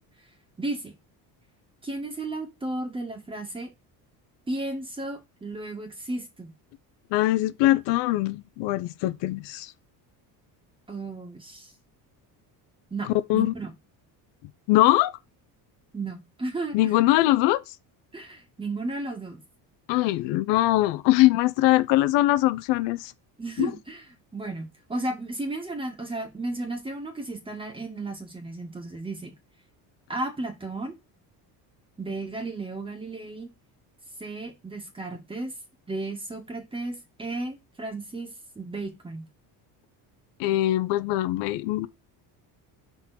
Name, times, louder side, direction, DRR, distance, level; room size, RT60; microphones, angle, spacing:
voice 1, 0.6-0.9 1.8-3.7 4.5-6.5 10.9-11.7 12.9-13.7 15.9-16.9 18.1-19.4 23.4-24.0 24.3-29.3 30.1-30.9 32.0-33.5 34.2-35.5 35.9-38.3 38.6-39.3, right 2 dB, 10° right, 1.8 m, -34 dB
voice 2, 7.1-9.7 13.3-13.5 14.7-15.2 16.7-17.7 19.9-23.1 23.6-23.7 40.4-41.9, left 16 dB, 85° left, 0.7 m, -22 dB
6.0 x 4.1 x 4.1 m
cardioid pair, 165°, 42 cm